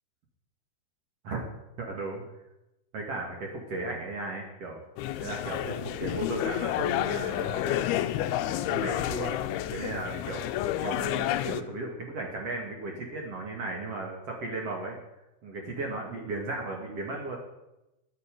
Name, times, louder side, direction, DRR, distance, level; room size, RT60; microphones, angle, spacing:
voice 1, 1.8-2.3 2.9-4.8 5.2-8.0 8.6-9.3 9.7-10.4 10.8-15.0 15.4-17.4, right 2 dB, 50° right, 0 dB, 2.2 m, -35 dB
sound 1, 5.0-11.6, left 12 dB, 80° left, 2.5 m, -30 dB
12.5 x 12.0 x 5.2 m, 0.94 s
omnidirectional pair, 4.7 m